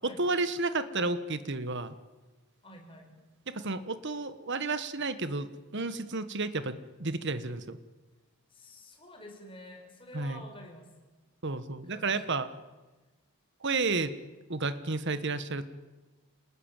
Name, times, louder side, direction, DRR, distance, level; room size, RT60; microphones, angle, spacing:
voice 1, 0.0-1.9 3.5-7.8 10.1-10.4 11.4-12.5 13.6-14.1 14.5-15.7, right 3 dB, 50° right, 12 dB, 1.4 m, -32 dB
voice 2, 2.6-3.2 8.5-10.9 11.9-12.2, left 1 dB, 25° left, 2 dB, 5.6 m, -49 dB
27.0 x 20.0 x 9.0 m, 1.2 s
head